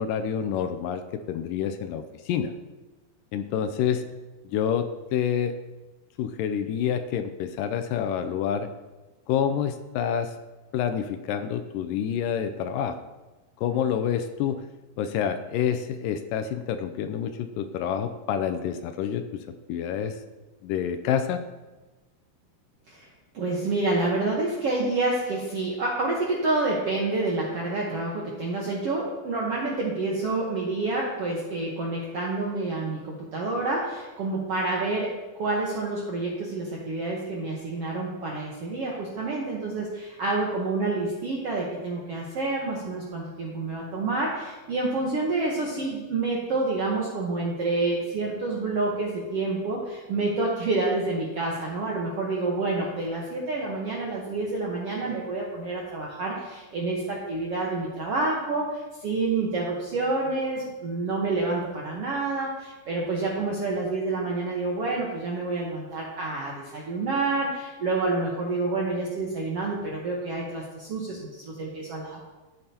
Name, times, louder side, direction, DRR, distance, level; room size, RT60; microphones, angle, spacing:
voice 1, 0.0-2.5 3.3-4.0 4.5-5.5 6.2-8.7 9.3-10.3 10.7-13.0 13.6-14.6 15.0-19.2 19.7-20.2 20.6-21.4, left 8 dB, 85° left, 8 dB, 1.9 m, -28 dB
voice 2, 22.9-35.1 35.4-72.2, right 3 dB, 70° right, -3 dB, 1.4 m, -28 dB
14.0 x 8.7 x 2.9 m, 1.2 s
omnidirectional pair, 4.5 m